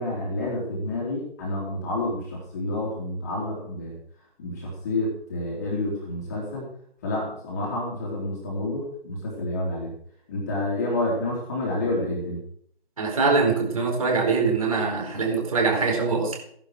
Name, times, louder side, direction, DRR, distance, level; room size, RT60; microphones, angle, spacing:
voice 1, 0.0-4.0 4.4-6.7 7.0-9.9 10.3-12.4, left 1 dB, 15° left, -3 dB, 3.2 m, -29 dB
voice 2, 13.0-16.4, right 4 dB, 35° right, 1 dB, 4.6 m, -23 dB
16.5 x 11.0 x 4.9 m, 0.64 s
figure-of-eight pair, 155°, 32 cm